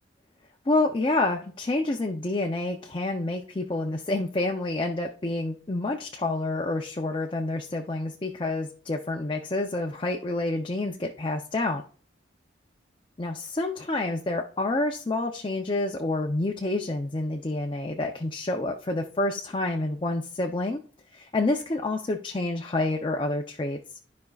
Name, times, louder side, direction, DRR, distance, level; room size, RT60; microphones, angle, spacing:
voice 1, 0.7-11.8 13.2-20.8 21.1-23.8, left 2 dB, 25° left, 3 dB, 0.5 m, -28 dB
12.0 x 5.1 x 2.3 m, 0.42 s
head